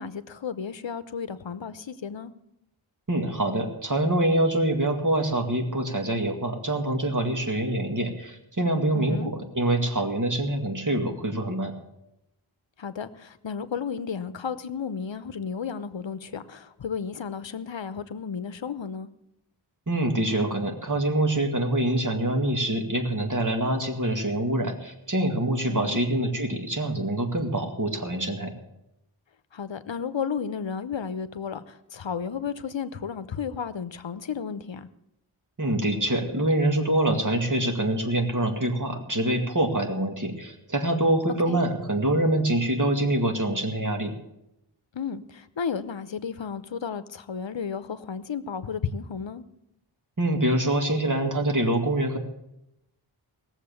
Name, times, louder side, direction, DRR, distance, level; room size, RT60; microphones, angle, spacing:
voice 1, 0.0-2.3 8.9-9.3 12.8-19.1 25.7-26.0 29.5-34.9 41.5-41.6 44.9-49.4, left 6 dB, 65° left, 13 dB, 0.9 m, -33 dB
voice 2, 3.1-11.7 19.9-28.5 35.6-44.1 50.2-52.2, right 1 dB, 40° right, 4 dB, 2.2 m, -25 dB
18.0 x 7.3 x 7.0 m, 0.84 s
wide cardioid pair, 55°, 49 cm